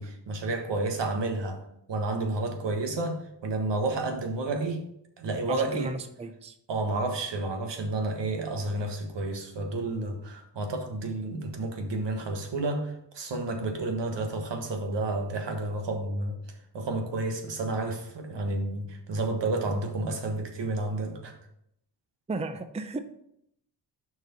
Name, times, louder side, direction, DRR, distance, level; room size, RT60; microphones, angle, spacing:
voice 1, 0.0-1.6 1.9-4.8 5.2-5.9 6.7-16.4 16.7-21.3, right 2 dB, 70° right, 4 dB, 1.5 m, -30 dB
voice 2, 5.5-6.6 22.3-23.0, right 3 dB, 15° right, 9 dB, 0.5 m, -34 dB
6.4 x 4.9 x 5.3 m, 0.74 s
cardioid pair, 85°, 44 cm